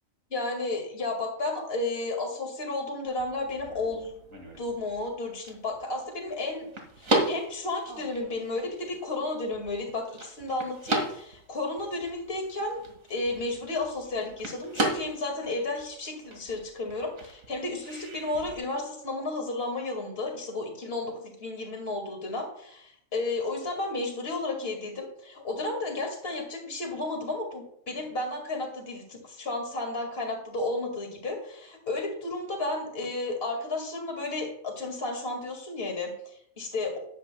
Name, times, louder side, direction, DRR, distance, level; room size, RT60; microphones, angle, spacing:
voice 1, 0.3-4.1 4.6-6.7 7.0-12.8 13.1-37.0, left 2 dB, 50° left, 2 dB, 2.2 m, -33 dB
sound 1, 3.1-18.6, right 2 dB, 85° right, 2.4 m, -36 dB
13.5 x 10.0 x 2.2 m, 0.71 s
omnidirectional pair, 1.4 m